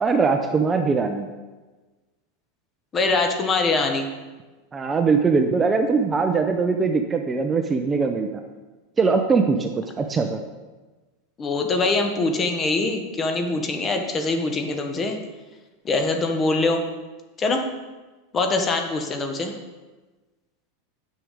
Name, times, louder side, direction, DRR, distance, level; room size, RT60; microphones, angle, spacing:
voice 1, 0.0-1.3 4.7-8.4 9.0-9.7 10.0-10.4, right 4 dB, 15° right, 5 dB, 0.5 m, -21 dB
voice 2, 2.9-4.1 11.4-15.2 15.8-16.8 17.4-17.6 18.3-19.5, left 3 dB, 20° left, 5 dB, 1.0 m, -23 dB
9.2 x 6.1 x 5.1 m, 1.2 s
supercardioid pair, 145°, 0 cm